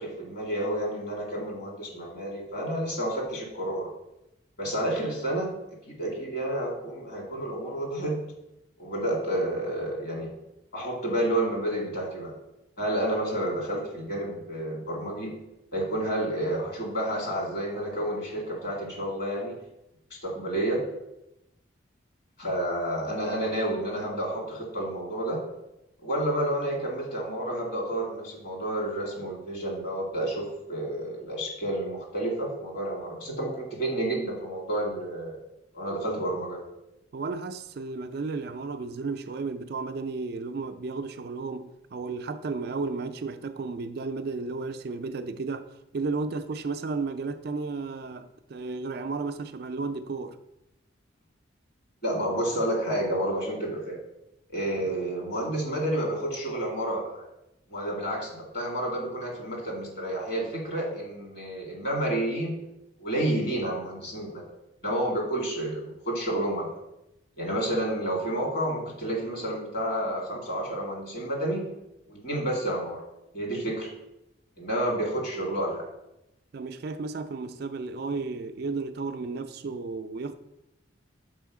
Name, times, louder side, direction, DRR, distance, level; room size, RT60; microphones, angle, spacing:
voice 1, 0.0-3.9 4.6-5.6 6.0-8.2 8.8-10.3 10.7-12.3 12.8-15.4 15.7-19.6 20.2-20.8 22.4-25.4 26.0-35.4 35.7-36.6 52.0-54.0 54.5-57.3 57.7-62.6 63.0-64.4 64.8-66.7 67.4-71.7 72.1-73.0 73.3-73.9 74.6-75.9, right 1 dB, 50° left, 2.1 m, -30 dB
voice 2, 37.1-50.4 76.5-80.4, right 4 dB, 50° right, 0.3 m, -33 dB
6.2 x 4.4 x 4.7 m
head